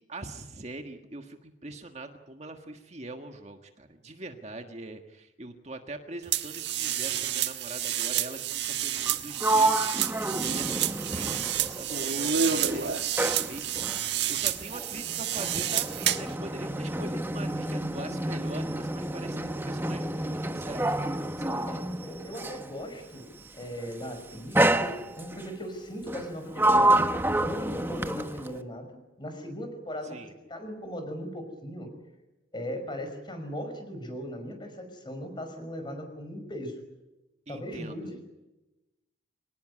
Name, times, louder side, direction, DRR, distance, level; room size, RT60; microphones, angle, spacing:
voice 1, 0.0-20.9 21.4-21.8 30.0-30.3 37.5-38.0, right 2 dB, 35° right, 5 dB, 1.6 m, -43 dB
sound 1, 6.3-16.3, right 9 dB, 65° right, 1.4 m, -29 dB
Sliding door, 9.0-12.3 12.6-22.7 23.6-23.9 24.5-25.5 26.1-28.6, right 1 dB, 10° right, 1.1 m, -29 dB
voice 2, 21.4-28.9 29.2-30.2 30.5-31.9 32.5-36.8 37.5-38.3, equal, 25° left, 7 dB, 5.5 m, -38 dB
25.0 x 19.0 x 9.9 m, 0.99 s
head